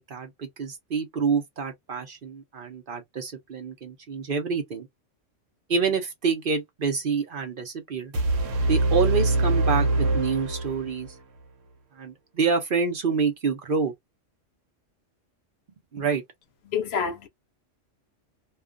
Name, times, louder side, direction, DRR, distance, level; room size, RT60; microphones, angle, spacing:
voice 1, 0.0-4.9 5.7-8.1 8.7-11.1 12.0-13.9 15.9-16.2, right 5 dB, 50° right, 0.8 m, -27 dB
sound 1, 8.1-11.1, right 2 dB, 80° right, 1.0 m, -24 dB
voice 2, 16.7-17.3, left 6 dB, 65° left, 0.8 m, -27 dB
2.4 x 2.3 x 2.3 m
omnidirectional pair, 1.3 m